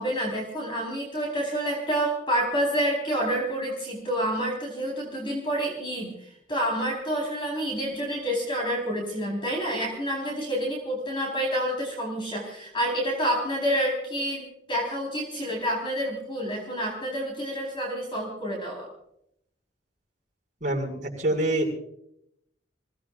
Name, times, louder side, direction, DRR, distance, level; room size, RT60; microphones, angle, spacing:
voice 1, 0.0-18.9, equal, 30° left, -2 dB, 4.4 m, -28 dB
voice 2, 20.6-21.7, right 1 dB, 45° right, -2 dB, 6.1 m, -26 dB
27.5 x 18.0 x 2.6 m, 0.76 s
head